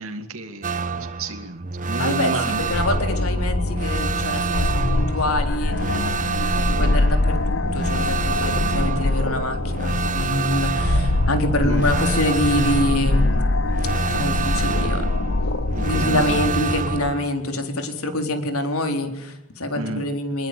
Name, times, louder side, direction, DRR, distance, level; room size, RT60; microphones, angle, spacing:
voice 1, 0.0-2.8 11.6-12.1 15.7-16.4 19.7-20.0, right 2 dB, 70° right, 3 dB, 2.5 m, -31 dB
sound 1, 0.6-17.3, right 5 dB, 35° right, 1.1 m, -28 dB
voice 2, 2.0-13.5 14.0-15.1 15.8-20.5, left 1 dB, 80° left, 6 dB, 4.0 m, -26 dB
sound 2, 2.5-17.1, left 2 dB, 55° left, 1.0 m, -23 dB
24.0 x 22.0 x 8.7 m, 0.79 s
head